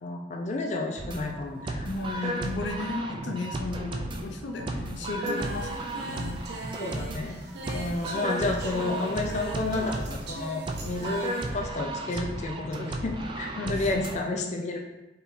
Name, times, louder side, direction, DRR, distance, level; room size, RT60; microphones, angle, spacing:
voice 1, 0.0-1.9 2.1-2.3 6.8-7.4 7.7-14.8, left 2 dB, 40° left, 1 dB, 0.4 m, -31 dB
sound 1, 1.0-14.2, right 1 dB, 30° right, 0.4 m, -34 dB
voice 2, 1.8-6.4 12.1-12.2 13.6-14.0, left 3 dB, 90° left, 2 dB, 0.6 m, -34 dB
Singing, 5.2-11.4, right 2 dB, 65° right, 0.7 m, -40 dB
4.5 x 3.3 x 2.6 m, 1.0 s
head